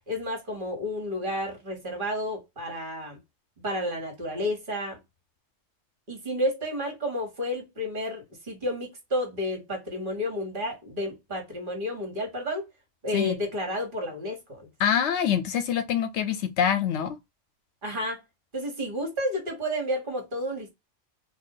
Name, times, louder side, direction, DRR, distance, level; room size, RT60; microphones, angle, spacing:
voice 1, 0.1-3.2 3.6-5.0 6.1-12.7 13.0-14.7 17.8-18.2 18.5-20.7, left 1 dB, 45° right, 1.3 m, -31 dB
voice 2, 14.8-17.2, left 8 dB, 70° left, 0.8 m, -25 dB
2.4 x 2.3 x 3.7 m
omnidirectional pair, 1.3 m